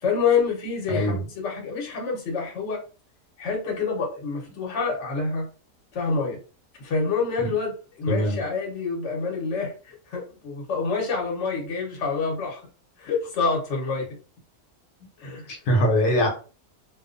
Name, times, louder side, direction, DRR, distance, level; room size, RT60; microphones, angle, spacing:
voice 1, 0.0-2.8 3.4-5.5 5.9-6.4 6.8-12.6 13.0-14.1 15.2-15.5, left 4 dB, 55° left, -1 dB, 1.1 m, -27 dB
voice 2, 0.9-1.2 7.4-7.5 8.1-8.4 15.5-16.3, equal, 80° left, 1 dB, 1.2 m, -22 dB
2.6 x 2.3 x 2.5 m, 0.37 s
omnidirectional pair, 1.6 m